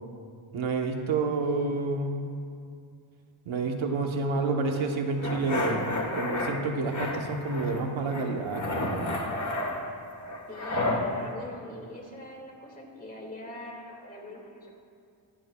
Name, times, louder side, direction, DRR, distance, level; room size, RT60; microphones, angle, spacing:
voice 1, 0.5-2.2 3.5-5.9 6.1-9.1, right 3 dB, 75° right, 3 dB, 1.1 m, -29 dB
sound 1, 5.2-6.5 6.9-7.8 8.1-11.0, left 2 dB, 35° left, 1.4 m, -31 dB
voice 2, 10.5-14.7, left 1 dB, 20° left, -2 dB, 2.0 m, -42 dB
23.5 x 8.8 x 2.3 m, 2.4 s
wide cardioid pair, 135°, 47 cm